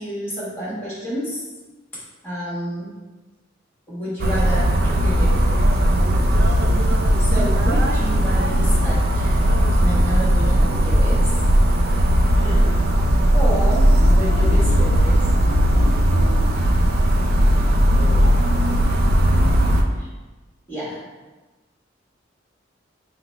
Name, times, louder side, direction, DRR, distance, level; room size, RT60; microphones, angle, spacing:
voice 1, 0.0-1.4 2.2-2.9 3.9-5.4 7.2-9.5 9.8-11.3 13.3-15.2 19.9-20.1 20.7-21.0, equal, 15° left, -9 dB, 1.4 m, -29 dB
sound 1, 4.2-19.8, equal, 55° right, 0.4 m, -17 dB
voice 2, 6.2-6.8 10.2-10.6 12.4-12.7 17.9-18.2, equal, 35° right, -7 dB, 0.8 m, -35 dB
3.9 x 2.1 x 4.4 m, 1.2 s
head